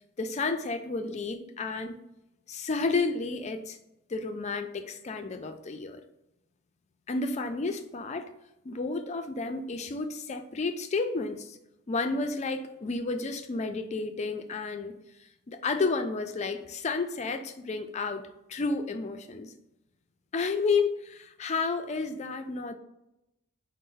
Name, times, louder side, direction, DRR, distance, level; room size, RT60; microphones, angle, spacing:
voice 1, 0.2-1.9 2.5-3.8 4.1-6.0 7.1-8.3 8.6-11.6 11.9-15.0 15.5-18.2 18.5-19.5 20.3-22.7, left 3 dB, 30° left, 8 dB, 0.3 m, -31 dB
5.0 x 2.1 x 3.8 m, 0.88 s
head